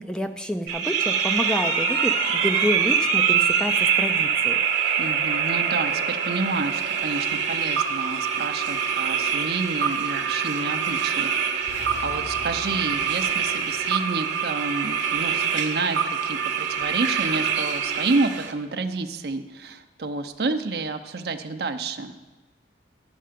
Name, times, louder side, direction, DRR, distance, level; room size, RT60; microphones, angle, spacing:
voice 1, 0.0-4.6, left 1 dB, 5° left, 7 dB, 0.4 m, -29 dB
sound 1, 0.7-18.5, right 7 dB, 90° right, 1.0 m, -24 dB
voice 2, 5.0-22.1, right 3 dB, 60° right, 7 dB, 0.6 m, -29 dB
sound 2, 11.7-13.9, left 2 dB, 80° left, 0.9 m, -42 dB
12.0 x 5.6 x 5.1 m, 1.2 s
head